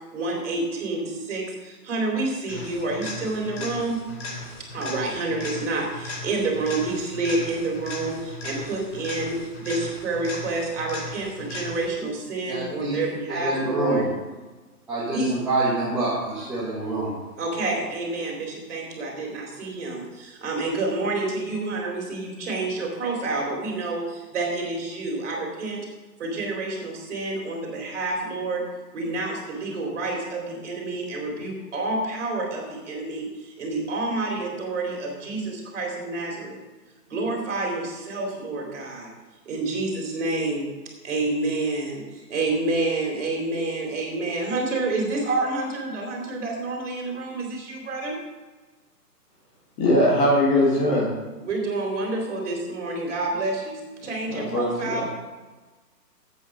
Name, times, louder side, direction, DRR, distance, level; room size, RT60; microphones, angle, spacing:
voice 1, 0.1-4.0 4.7-14.1 15.1-15.3 17.4-25.8 26.2-28.6 28.9-36.6 37.1-39.1 39.5-40.7 41.0-48.2 51.4-55.0, right 2 dB, 45° right, 0 dB, 3.8 m, -28 dB
sound 1, 2.5-12.1 20.0-20.1, left 2 dB, 45° left, 3.2 m, -37 dB
voice 2, 12.5-13.0 13.3-14.1 14.9-17.1, right 2 dB, 5° right, -12 dB, 1.0 m, -26 dB
voice 3, 49.8-51.1 54.3-55.0, left 1 dB, 20° left, -4 dB, 1.9 m, -21 dB
8.5 x 8.5 x 6.5 m, 1.3 s
hypercardioid pair, 160°, 48 cm